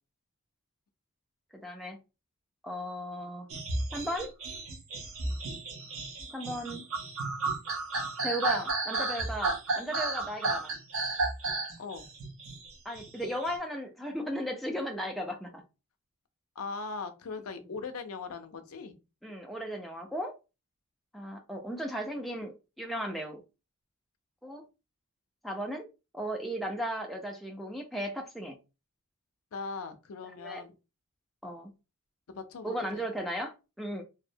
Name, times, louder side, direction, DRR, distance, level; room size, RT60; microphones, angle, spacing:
voice 1, 1.5-2.0 2.6-3.5 3.9-4.3 6.3-6.8 8.2-10.7 12.8-15.6 19.2-20.3 21.1-23.4 24.4-24.6 25.4-25.8 26.1-28.6 30.4-30.6 31.4-31.7 32.6-34.0, equal, ahead, 1 dB, 0.3 m, -36 dB
sound 1, 3.5-13.5, right 3 dB, 65° right, 0.6 m, -33 dB
voice 2, 16.6-19.0 29.5-30.7 32.3-33.0, left 4 dB, 70° left, 7 dB, 0.5 m, -40 dB
2.7 x 2.0 x 2.5 m, 0.29 s
head